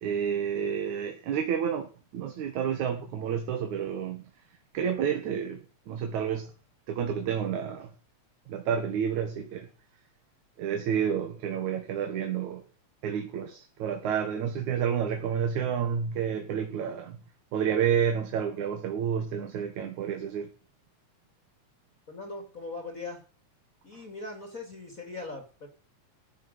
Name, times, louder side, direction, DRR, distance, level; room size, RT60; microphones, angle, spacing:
voice 1, 0.0-4.3 4.7-5.6 5.9-6.5 6.9-7.9 8.5-9.7 10.6-12.6 13.0-17.2 17.5-20.5, right 8 dB, 80° right, 2.9 m, -30 dB
voice 2, 22.1-23.2 23.8-25.7, left 3 dB, 30° left, 3.6 m, -40 dB
14.5 x 7.1 x 9.6 m
omnidirectional pair, 3.4 m